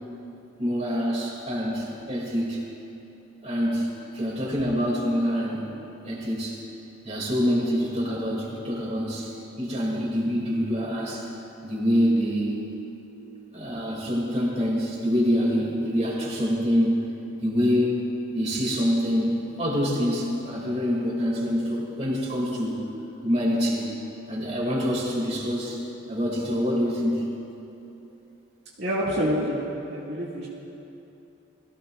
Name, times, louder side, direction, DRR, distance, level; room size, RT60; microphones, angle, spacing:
voice 1, 0.6-2.6 3.4-3.9 4.1-5.7 6.1-6.6 7.0-9.3 9.6-11.3 11.6-12.6 13.5-17.1 17.4-22.8 23.2-23.9 24.3-25.8 26.1-27.2, equal, 30° right, -4 dB, 3.0 m, -25 dB
voice 2, 28.8-29.6 29.9-30.5, equal, 55° right, -7 dB, 2.3 m, -27 dB
22.0 x 15.5 x 2.7 m, 2.9 s
head